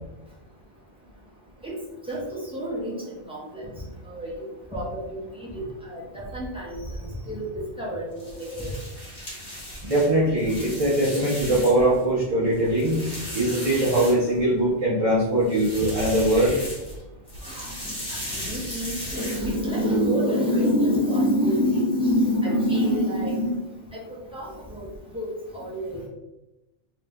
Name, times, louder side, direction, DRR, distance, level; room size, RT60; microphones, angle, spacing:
voice 1, 2.0-3.7 4.0-8.8 11.8-11.9 12.8-12.9 17.4-23.6 23.9-24.0 24.3-24.9 25.1-26.1, equal, 5° right, -6 dB, 0.9 m, -27 dB
sound 1, 8.1-12.0 12.4-14.6 15.4-17.0 17.3-19.8, equal, 40° left, 1.5 m, -36 dB
voice 2, 9.8-13.0 13.3-16.6, right 1 dB, 35° right, -8 dB, 0.8 m, -21 dB
3.2 x 2.9 x 3.5 m, 0.96 s
omnidirectional pair, 1.2 m